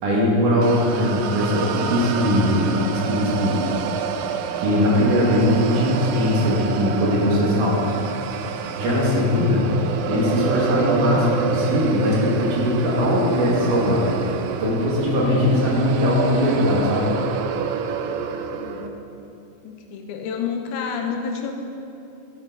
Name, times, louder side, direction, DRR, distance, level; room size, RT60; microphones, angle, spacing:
voice 1, 0.0-3.6 4.6-7.9 8.8-9.7 10.1-14.1 14.6-17.1, left 1 dB, 60° right, -5 dB, 3.2 m, -20 dB
sound 1, 0.6-18.9, right 7 dB, 80° right, 2.1 m, -28 dB
voice 2, 18.3-19.0 19.6-21.5, left 6 dB, 85° left, 3 dB, 2.7 m, -30 dB
13.0 x 8.4 x 3.9 m, 2.7 s
omnidirectional pair, 4.4 m